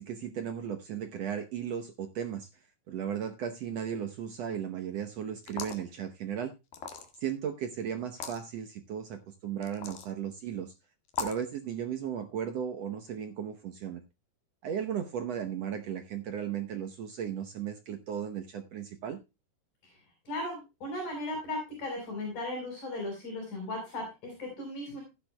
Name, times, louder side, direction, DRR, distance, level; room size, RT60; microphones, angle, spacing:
voice 1, 0.0-2.5 2.9-6.5 7.2-10.7 11.2-14.0 14.6-19.2, right 8 dB, 70° right, 6 dB, 1.6 m, -36 dB
sound 1, 5.4-5.9 6.7-7.3 8.1-8.4 9.6-10.1 11.1-11.5, left 6 dB, 85° left, 3.5 m, -38 dB
voice 2, 20.3-25.0, left 1 dB, 60° left, 1 dB, 6.2 m, -36 dB
15.5 x 10.0 x 2.2 m, 0.26 s
omnidirectional pair, 4.0 m